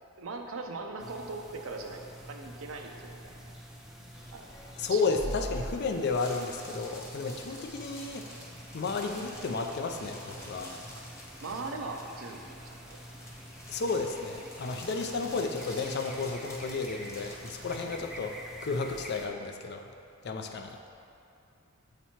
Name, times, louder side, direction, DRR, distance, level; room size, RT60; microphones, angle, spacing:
voice 1, 0.2-3.3 4.3-4.5 4.9-5.0 11.4-13.0, right 3 dB, 80° right, 3 dB, 0.6 m, -40 dB
sound 1, 1.0-19.3, equal, ahead, 0.5 m, -48 dB
sound 2, 4.1-17.8, equal, 15° left, 0.9 m, -46 dB
voice 2, 4.8-8.2 8.7-10.7 13.7-18.4 18.6-19.9 20.2-20.8, left 4 dB, 55° left, 4 dB, 0.4 m, -32 dB
8.0 x 3.0 x 4.3 m, 2.5 s
head